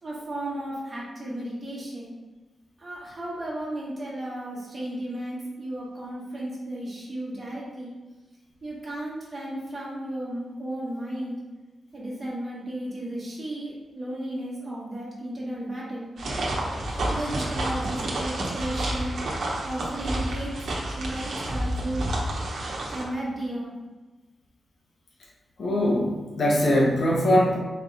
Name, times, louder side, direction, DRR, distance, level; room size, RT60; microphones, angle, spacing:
voice 1, 0.0-2.1 2.8-7.9 8.6-11.4 11.9-16.1 17.1-19.1 19.6-20.5 20.9-22.0 22.9-23.7, right 1 dB, 40° right, -5 dB, 1.4 m, -34 dB
sound 1, 16.2-23.0, right 1 dB, 75° right, 0.9 m, -29 dB
voice 2, 25.6-27.6, equal, 65° left, -2 dB, 1.0 m, -21 dB
4.3 x 3.4 x 2.6 m, 1.2 s
cardioid pair, 85°, 0 cm